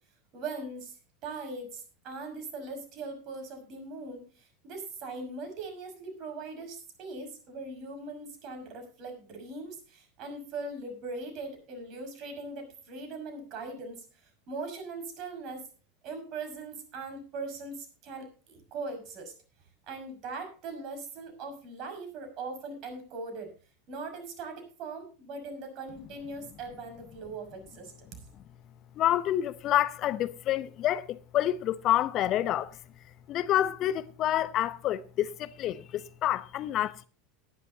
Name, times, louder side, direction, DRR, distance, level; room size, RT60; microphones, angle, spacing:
voice 1, 0.3-1.0 1.2-14.0 14.5-15.6 16.0-19.3 19.9-23.5 23.9-28.1, right 3 dB, 45° right, 6.0 m, -40 dB
voice 2, 29.0-32.7 33.3-37.0, left 12 dB, 40° left, 0.8 m, -28 dB
18.5 x 11.0 x 2.8 m
figure-of-eight pair, 80°, 0 cm